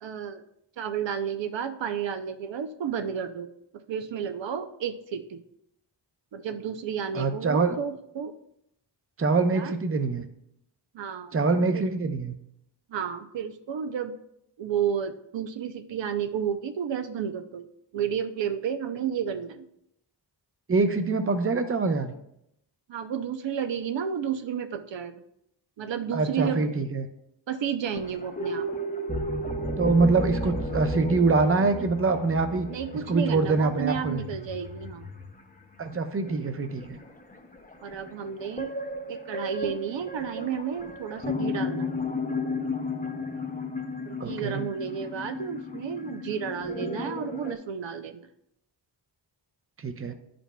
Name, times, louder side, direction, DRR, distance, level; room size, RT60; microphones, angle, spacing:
voice 1, 0.0-0.4 0.8-5.4 6.3-8.3 9.5-9.8 10.9-11.4 11.7-11.9 12.9-14.2 14.6-17.7 17.9-19.7 22.9-25.2 25.8-26.7 27.5-28.7 32.7-35.1 37.8-38.8 39.1-42.0 44.0-48.3, right 7 dB, 75° right, 8 dB, 0.6 m, -32 dB
voice 2, 7.1-7.8 9.2-10.2 11.3-12.4 20.7-22.1 26.1-27.1 29.8-32.7 33.1-34.2 35.8-37.0 44.2-44.6 49.8-50.1, right 3 dB, 30° right, 8 dB, 0.6 m, -24 dB
sound 1, 27.8-35.4 35.9-36.0 36.2-47.5, left 2 dB, 20° left, 0.7 m, -34 dB
11.0 x 5.1 x 2.2 m, 0.78 s
wide cardioid pair, 85°, 44 cm